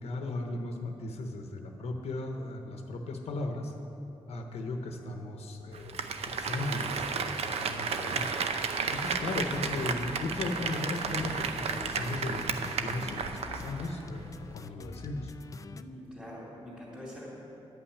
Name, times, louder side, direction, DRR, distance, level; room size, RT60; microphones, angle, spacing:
voice 1, 0.0-3.7 4.3-8.3 8.9-14.3 14.5-15.3, left 2 dB, 80° left, 4 dB, 0.9 m, -36 dB
Applause, 5.7-13.9 14.2-14.3, right 5 dB, 80° right, 0.6 m, -33 dB
sound 1, 9.0-15.8, left 4 dB, 30° left, 0.3 m, -45 dB
voice 2, 15.7-17.3, equal, 5° right, -8 dB, 2.7 m, -45 dB
10.5 x 5.7 x 8.5 m, 2.9 s
wide cardioid pair, 130°, 10 cm